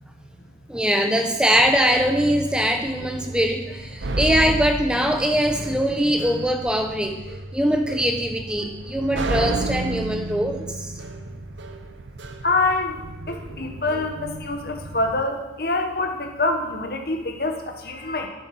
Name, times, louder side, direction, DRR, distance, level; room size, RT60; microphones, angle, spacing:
voice 1, 0.7-7.2 7.5-10.9, equal, 5° right, 4 dB, 1.0 m, -22 dB
sound 1, 1.5-15.2, right 2 dB, 90° right, 0.8 m, -32 dB
voice 2, 12.4-13.0 13.3-18.3, left 2 dB, 55° left, 4 dB, 1.3 m, -25 dB
11.0 x 7.5 x 5.9 m, 1.1 s
head